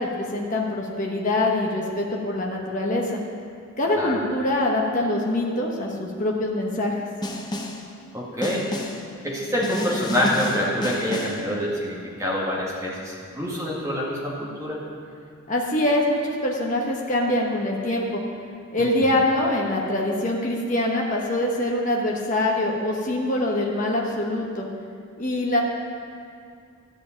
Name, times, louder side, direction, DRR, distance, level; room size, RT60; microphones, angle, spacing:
voice 1, 0.0-3.2 3.8-7.1 15.5-18.2 18.7-24.7 25.2-25.6, left 1 dB, 35° left, -2 dB, 1.1 m, -24 dB
Snare drum, 7.2-7.9 8.4-9.1 9.6-11.5, left 1 dB, 20° left, 0.7 m, -30 dB
voice 2, 8.1-8.7 9.2-14.8 18.8-19.1, left 1 dB, 15° right, -5 dB, 2.0 m, -26 dB
12.5 x 5.1 x 8.8 m, 2.3 s
head